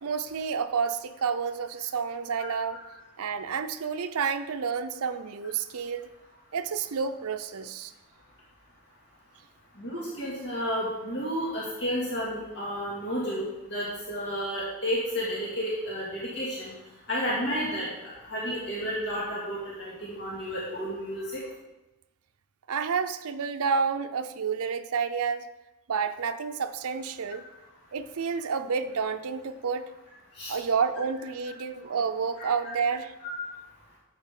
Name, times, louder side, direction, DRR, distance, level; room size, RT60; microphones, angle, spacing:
voice 1, 0.0-2.8 3.2-6.1 6.5-7.9 22.7-25.5 25.9-27.4 27.9-29.9 30.5-33.1, right 6 dB, 80° right, 8 dB, 0.6 m, -30 dB
voice 2, 9.8-16.7 17.1-21.4 30.4-30.6 32.4-32.5 33.2-33.3, equal, 50° left, -7 dB, 2.3 m, -32 dB
11.0 x 8.0 x 3.7 m, 1.0 s
head